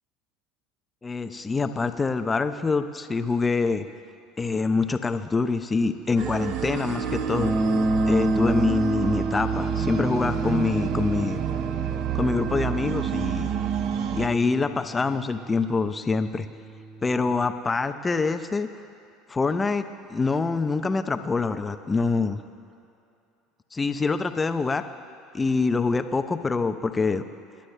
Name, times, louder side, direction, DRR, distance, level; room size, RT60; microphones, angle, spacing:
voice 1, 1.0-3.8 4.4-7.5 8.1-11.4 12.1-13.5 14.1-16.5 17.0-18.7 19.3-22.4 23.7-24.8 25.3-27.2, left 4 dB, 20° left, 9 dB, 0.7 m, -25 dB
sound 1, 6.2-14.3, right 9 dB, 60° right, 0.6 m, -29 dB
sound 2, 7.4-17.5, right 1 dB, 10° right, 1.0 m, -30 dB
27.5 x 11.5 x 2.2 m, 2.7 s
hypercardioid pair, 85°, 0 cm